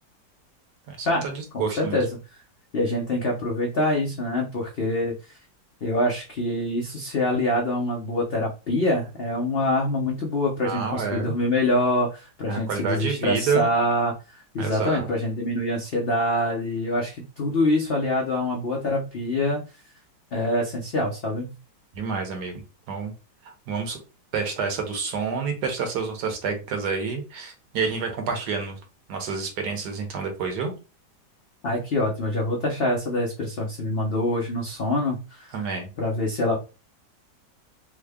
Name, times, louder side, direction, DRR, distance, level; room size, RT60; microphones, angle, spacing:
voice 1, 0.9-2.0 10.6-11.3 12.5-13.7 14.6-15.1 21.9-22.6 22.9-23.1 23.4-24.0 24.3-28.8 29.1-30.7 35.5-35.9, right 5 dB, 70° right, 4 dB, 1.4 m, -28 dB
voice 2, 1.5-2.1 2.7-5.4 5.8-19.6 20.3-21.5 31.6-35.7 36.0-36.6, left 1 dB, 70° left, -1 dB, 0.5 m, -25 dB
3.6 x 2.1 x 3.4 m, 0.31 s
omnidirectional pair, 1.9 m